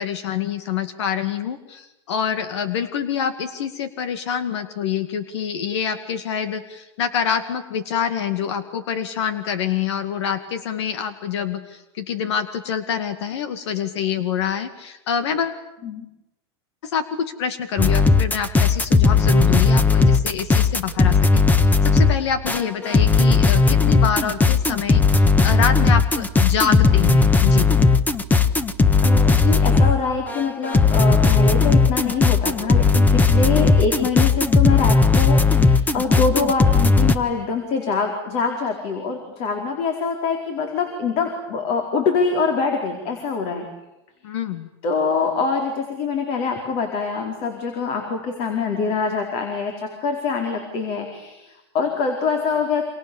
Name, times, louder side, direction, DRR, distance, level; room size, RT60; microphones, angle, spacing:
voice 1, 0.0-15.6 16.8-27.7 44.2-44.7, left 8 dB, 80° left, 10 dB, 2.3 m, -26 dB
sound 1, 17.8-30.0 30.3-37.2, left 4 dB, 10° left, 1.5 m, -16 dB
voice 2, 29.0-43.6 44.8-52.8, left 5 dB, 45° left, 4 dB, 4.9 m, -24 dB
29.0 x 27.0 x 7.3 m, 0.92 s
supercardioid pair, 130°, 14 cm